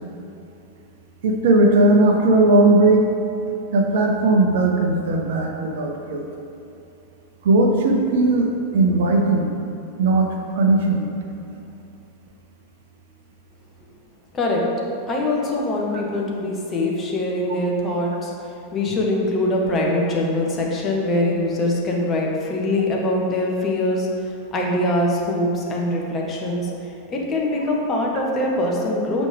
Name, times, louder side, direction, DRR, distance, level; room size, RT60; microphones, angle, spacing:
voice 1, 1.2-3.0 3.7-6.2 7.4-9.5 10.0-11.1, right 2 dB, 55° right, 2 dB, 0.7 m, -18 dB
voice 2, 15.1-18.3 18.7-29.3, left 1 dB, 25° left, -2 dB, 1.1 m, -23 dB
7.3 x 5.1 x 3.3 m, 2.7 s
figure-of-eight pair, 90°, 0 cm